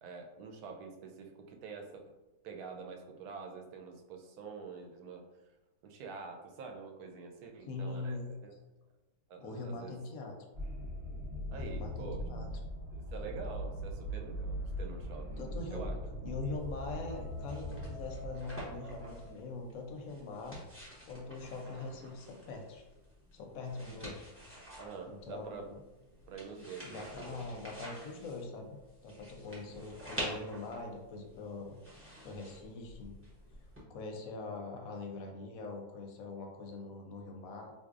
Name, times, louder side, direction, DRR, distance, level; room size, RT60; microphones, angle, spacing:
voice 1, 0.0-2.1 2.4-5.3 5.8-8.5 9.3-9.9 11.5-12.2 12.9-15.3 15.7-16.0 24.8-25.7 26.3-27.5 29.7-29.8, right 5 dB, 75° right, 2 dB, 1.1 m, -46 dB
voice 2, 7.7-8.3 9.4-10.3 11.5-12.5 15.4-15.9 16.2-20.6 21.0-22.8 23.3-24.3 25.1-25.8 26.8-31.8 32.2-33.2 33.9-37.7, left 3 dB, 70° left, 2 dB, 0.9 m, -42 dB
sound 1, 10.5-19.3, equal, 50° right, 0.8 m, -40 dB
sound 2, 16.6-33.8, equal, 15° right, 0.4 m, -49 dB
4.0 x 2.6 x 2.4 m, 1.1 s
omnidirectional pair, 1.7 m